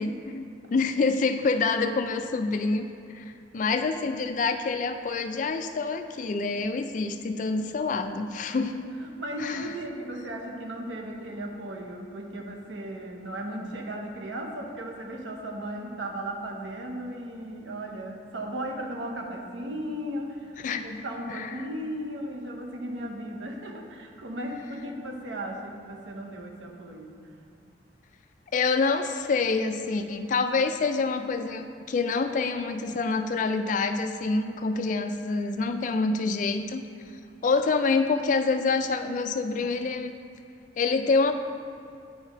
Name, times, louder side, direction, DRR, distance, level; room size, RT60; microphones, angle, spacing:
voice 1, 0.0-8.9 9.4-9.7 20.6-21.0 21.3-21.5 28.5-36.8 37.4-40.1 40.8-41.3, left 4 dB, 45° left, 8 dB, 0.3 m, -27 dB
voice 2, 9.0-27.3, right 1 dB, 90° right, 1 dB, 0.8 m, -36 dB
9.9 x 4.1 x 3.0 m, 2.5 s
head